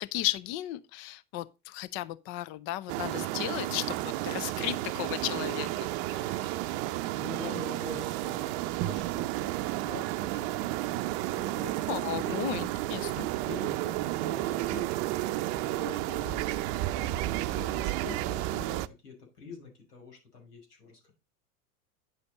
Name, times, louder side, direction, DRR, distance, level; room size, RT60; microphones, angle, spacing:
voice 1, 0.0-6.6 11.9-13.3, left 16 dB, 30° left, 0.4 m, -35 dB
sound 1, 2.9-18.9, right 16 dB, 50° right, 0.7 m, -32 dB
voice 2, 6.9-12.7 13.0-21.1, left 4 dB, 80° left, 5.9 m, -46 dB
9.7 x 6.8 x 4.1 m
hypercardioid pair, 100°, 46 cm